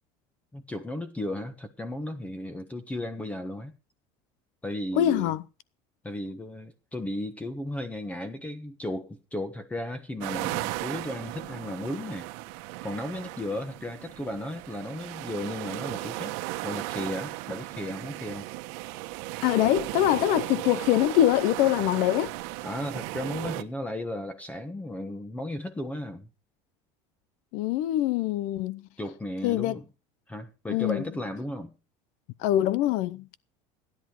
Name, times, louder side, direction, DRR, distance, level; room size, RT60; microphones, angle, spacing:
voice 1, 0.5-3.7 4.6-5.3 6.0-12.3 12.8-16.3 16.6-18.5 22.6-26.3 29.0-29.8 30.3-31.7, left 1 dB, 10° left, 1.4 m, -35 dB
voice 2, 5.0-5.4 19.4-22.3 27.5-28.8 29.4-29.8 30.7-31.0 32.4-33.3, left 13 dB, 65° left, 0.7 m, -24 dB
sound 1, 10.2-23.6, right 18 dB, 80° right, 1.2 m, -36 dB
16.0 x 10.5 x 4.7 m
cardioid pair, 145°, 14 cm